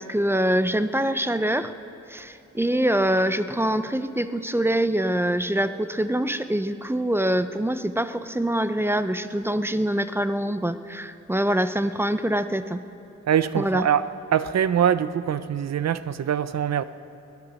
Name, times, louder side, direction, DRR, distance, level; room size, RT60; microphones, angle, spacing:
voice 1, 0.0-1.7 2.1-12.8 13.6-13.9, right 1 dB, 10° right, 0.4 m, -24 dB
voice 2, 13.3-14.1 14.3-16.8, right 9 dB, 65° right, 0.5 m, -23 dB
20.5 x 10.5 x 6.3 m
wide cardioid pair, 125°, 29 cm